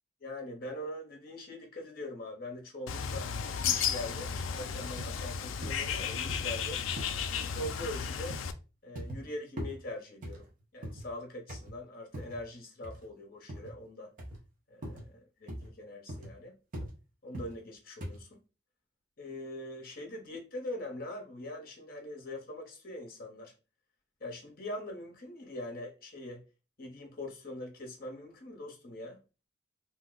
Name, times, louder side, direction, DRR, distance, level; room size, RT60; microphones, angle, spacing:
voice 1, 0.2-6.8 7.3-8.4 8.8-10.5 10.7-14.1 14.7-16.6 17.2-18.4 19.2-23.5 24.2-26.4 26.8-29.2, left 1 dB, 45° left, 0.8 m, -42 dB
Bird, 2.9-8.5, left 7 dB, 80° left, 0.3 m, -34 dB
sound 1, 4.4-4.5 5.0-5.2 5.6-5.8 6.3-6.5 7.0-7.2 7.6-7.9 8.3-8.5 8.9-9.2 9.6-9.8 10.2-11.1 11.5-11.8 12.1-12.4 12.8-13.1 13.5-13.7 14.2-14.4 14.8-15.1 15.5-15.7 16.1-16.3 16.7-16.9 17.3-17.6 18.0-18.2, equal, 40° right, 0.8 m, -41 dB
2.7 x 2.0 x 3.7 m
head